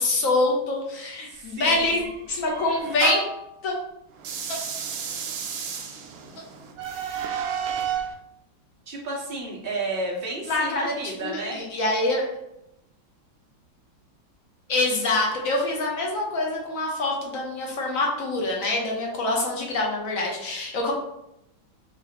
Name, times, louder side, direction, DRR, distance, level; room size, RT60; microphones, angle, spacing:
voice 1, 0.0-2.0 2.3-3.3 3.6-3.7 4.5-4.6 10.5-12.3 14.7-20.9, left 2 dB, 60° left, -1 dB, 0.9 m, -25 dB
voice 2, 1.3-2.1 8.9-11.6, right 2 dB, 50° right, -2 dB, 0.6 m, -32 dB
sound 1, 1.6-3.5 4.2-8.1, right 7 dB, 85° right, 0.8 m, -32 dB
4.8 x 2.6 x 2.8 m, 0.84 s
omnidirectional pair, 2.1 m